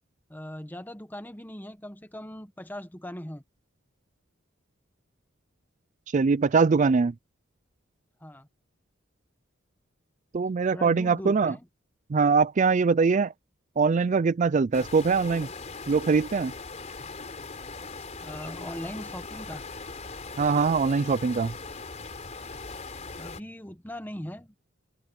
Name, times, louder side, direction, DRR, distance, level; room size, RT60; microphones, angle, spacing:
voice 1, 0.3-3.4 8.2-8.5 10.7-11.7 18.2-19.6 23.2-24.5, equal, 10° left, 1.3 m, -39 dB
voice 2, 6.1-7.1 10.3-11.5 12.1-13.3 13.8-15.5 15.9-16.5 20.4-21.5, right 4 dB, 40° right, 0.4 m, -22 dB
sound 1, 14.7-23.4, left 4 dB, 35° left, 3.7 m, -40 dB
open air
head